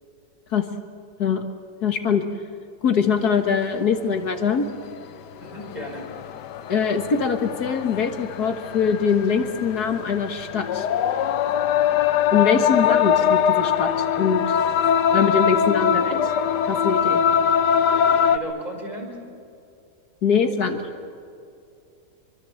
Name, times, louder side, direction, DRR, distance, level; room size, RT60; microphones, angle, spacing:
voice 1, 1.8-2.2 2.8-4.7 6.7-10.9 12.3-14.6 15.1-16.3 16.7-17.2 20.2-20.8, left 6 dB, 70° left, 6 dB, 2.0 m, -22 dB
sound 1, 3.9-4.0 4.8-5.0 5.5-18.4, left 8 dB, 90° left, 1.4 m, -22 dB
voice 2, 5.4-6.1 18.3-19.2, equal, 25° right, 1 dB, 5.3 m, -34 dB
24.5 x 24.0 x 7.8 m, 2.5 s
omnidirectional pair, 1.8 m